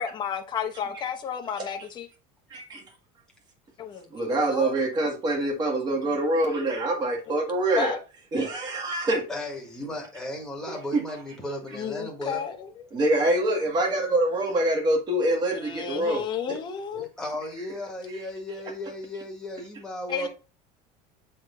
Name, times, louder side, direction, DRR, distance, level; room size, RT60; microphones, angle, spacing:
voice 1, 0.0-2.1 3.8-4.7 7.8-8.0 8.4-8.5 11.7-12.9 15.5-17.1 20.1-20.3, left 7 dB, 25° left, 0.9 m, -32 dB
voice 2, 2.5-2.8 4.1-8.0 8.3-9.2 12.9-16.2 16.9-17.1, right 1 dB, 25° right, 1.7 m, -25 dB
voice 3, 9.3-12.4 17.2-20.3, left 1 dB, 5° left, 1.7 m, -35 dB
7.6 x 3.5 x 3.7 m
cardioid pair, 160°, 17 cm